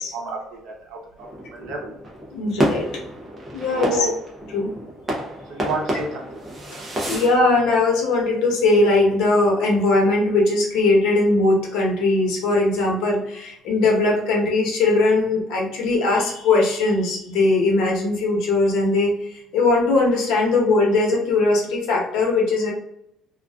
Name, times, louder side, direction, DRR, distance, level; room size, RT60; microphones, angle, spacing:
voice 1, 0.1-2.0 3.6-4.1 5.5-6.4 6.8-6.9, right 2 dB, 75° right, 1 dB, 0.7 m, -30 dB
sound 1, 1.2-7.4, right 1 dB, 20° right, 0.6 m, -29 dB
voice 2, 2.3-3.0 3.5-4.1 4.5-4.7 7.1-22.7, left 2 dB, 80° left, -1 dB, 0.8 m, -20 dB
2.4 x 2.3 x 2.3 m, 0.79 s
cardioid pair, 165°, 0 cm